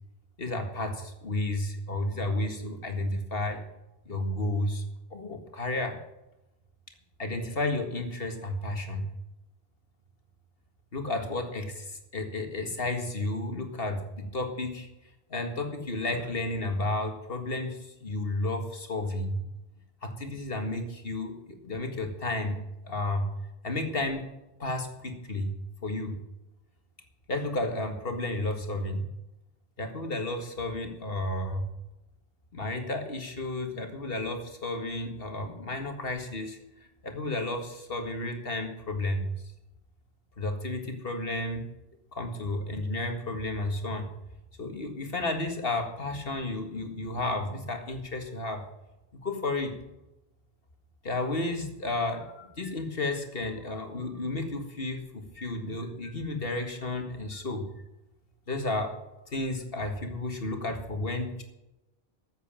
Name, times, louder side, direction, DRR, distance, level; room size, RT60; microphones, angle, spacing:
voice 1, 0.4-3.6 4.1-4.8 5.1-6.0 7.2-9.1 10.9-14.9 15.3-19.4 20.0-22.6 22.8-23.3 23.6-24.2 24.6-25.5 25.8-26.2 27.3-29.0 29.8-31.7 32.5-36.6 37.0-39.3 40.4-41.6 42.1-44.1 44.6-48.6 49.1-49.7 51.0-57.7 58.5-58.9 59.3-61.4, left 2 dB, 65° left, 4 dB, 2.1 m, -32 dB
14.0 x 8.3 x 7.3 m, 0.94 s
omnidirectional pair, 1.1 m